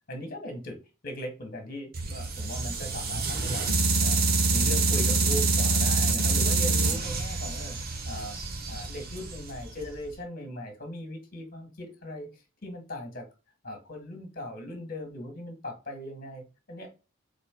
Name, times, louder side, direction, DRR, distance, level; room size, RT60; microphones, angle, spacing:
voice 1, 0.1-0.8 1.0-3.7 4.0-4.2 4.5-7.8 8.0-8.4 8.7-13.3 13.6-16.9, left 1 dB, 45° left, 4 dB, 1.5 m, -39 dB
sound 1, 1.9-10.0, right 3 dB, 50° right, 1.0 m, -26 dB
4.4 x 4.1 x 2.2 m, 0.30 s
head